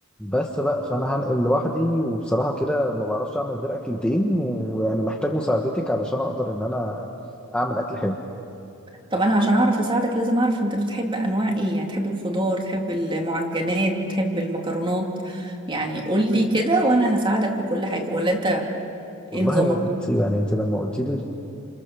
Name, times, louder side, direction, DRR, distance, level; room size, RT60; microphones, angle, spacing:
voice 1, 0.2-7.1 7.5-8.2 19.3-21.2, equal, 5° left, 0 dB, 1.3 m, -24 dB
voice 2, 9.1-18.7 19.3-19.8, right 1 dB, 20° right, 1 dB, 2.9 m, -23 dB
30.0 x 28.5 x 7.0 m, 2.7 s
head